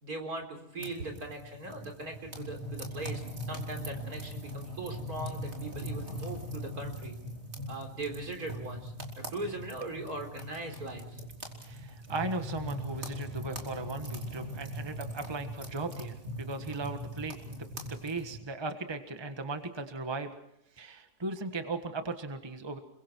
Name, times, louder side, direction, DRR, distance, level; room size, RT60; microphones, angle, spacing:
voice 1, 0.0-3.2 3.5-7.2 7.7-8.9 9.3-11.3, right 2 dB, 75° right, 3 dB, 4.3 m, -40 dB
sound 1, 0.8-18.4, equal, 45° right, 4.0 m, -41 dB
voice 2, 11.6-20.3 20.8-22.8, right 3 dB, 15° right, 7 dB, 1.5 m, -37 dB
29.5 x 23.0 x 4.6 m, 0.80 s
omnidirectional pair, 1.6 m